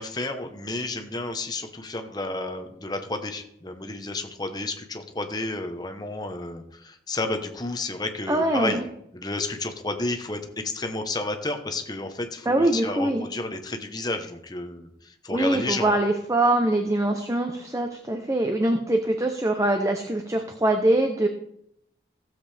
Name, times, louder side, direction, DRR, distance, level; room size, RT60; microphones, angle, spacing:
voice 1, 0.0-8.8 9.1-16.0, left 2 dB, 20° left, 6 dB, 1.0 m, -31 dB
voice 2, 8.3-8.9 12.5-13.2 15.3-21.3, right 1 dB, 15° right, 5 dB, 0.7 m, -23 dB
15.5 x 7.6 x 3.4 m, 0.74 s
head